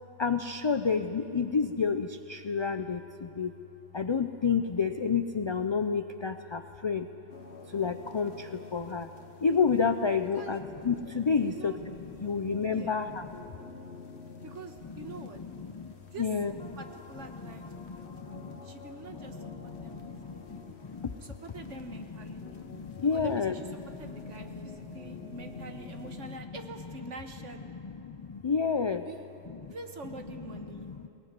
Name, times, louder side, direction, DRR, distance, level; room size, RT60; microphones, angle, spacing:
voice 1, 0.2-3.6 3.9-7.1 7.7-9.1 9.4-13.5 14.8-16.8 17.3-18.6 19.1-21.2 21.6-26.6 27.7-29.1 29.5-29.7 30.5-31.1, left 5 dB, 40° left, 8 dB, 0.4 m, -31 dB
sound 1, 7.3-26.4, left 3 dB, 60° left, 1.5 m, -49 dB
voice 2, 11.4-11.8 12.7-13.0 14.4-15.4 16.1-16.3 16.8-18.1 18.6-20.0 20.4-20.6 21.2-22.5 23.1-23.6 24.0-27.7 29.0-29.2 29.7-30.9, right 3 dB, 80° right, 5 dB, 1.7 m, -45 dB
21.0 x 19.0 x 9.6 m, 2.9 s
omnidirectional pair, 1.2 m